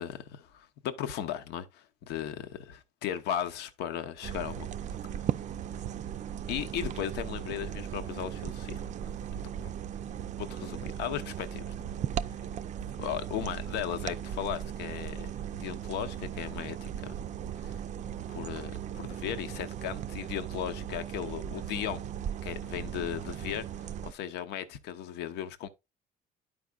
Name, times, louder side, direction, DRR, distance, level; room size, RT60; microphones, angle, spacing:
voice 1, 0.0-4.7 6.5-8.8 10.4-11.7 13.0-17.1 17.6-17.8 18.3-22.1 22.4-25.7, left 10 dB, 85° left, 0.8 m, -36 dB
sound 1, 4.2-24.1, right 9 dB, 45° right, 0.4 m, -37 dB
11.5 x 4.8 x 2.3 m
cardioid pair, 110°, 17 cm